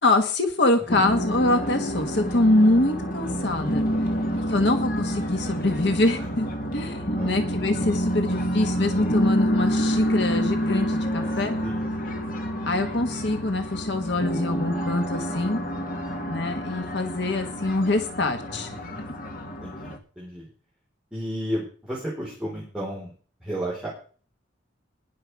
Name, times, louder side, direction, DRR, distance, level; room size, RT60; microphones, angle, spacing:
voice 1, 0.0-3.8 4.5-6.5 6.7-11.6 12.7-15.6 16.3-18.7, left 2 dB, 65° left, 6 dB, 1.4 m, -24 dB
sound 1, 0.9-20.0, equal, 45° left, 2.0 m, -28 dB
voice 2, 3.9-4.2 6.2-6.3 6.8-7.3 11.6-11.9 18.5-19.2 19.6-20.5 21.1-23.1 23.4-23.9, equal, 5° right, -6 dB, 4.1 m, -34 dB
19.5 x 6.6 x 4.7 m, 0.40 s
head